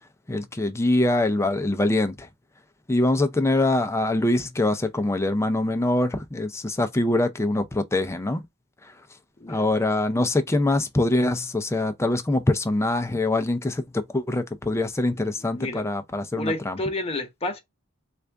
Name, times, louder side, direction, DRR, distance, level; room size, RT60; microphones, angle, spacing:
voice 1, 0.3-2.3 2.9-8.4 8.8-8.9 9.5-16.8, left 2 dB, 15° left, 0.4 m, -24 dB
voice 2, 15.2-15.9 16.4-17.6, left 2 dB, 30° left, 0.9 m, -31 dB
3.3 x 2.5 x 3.4 m
head